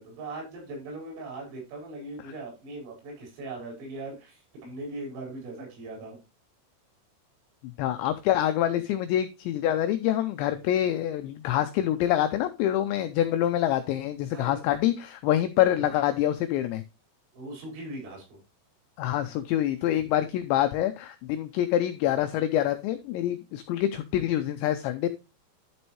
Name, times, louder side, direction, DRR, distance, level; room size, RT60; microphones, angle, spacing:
voice 1, 0.0-6.2 14.3-14.6 15.8-15.9 17.3-18.4 20.0-20.1, right 2 dB, 80° right, -1 dB, 7.8 m, -40 dB
voice 2, 7.6-16.8 19.0-25.1, left 12 dB, 90° left, 9 dB, 2.5 m, -26 dB
11.5 x 6.2 x 3.0 m, 0.28 s
omnidirectional pair, 5.9 m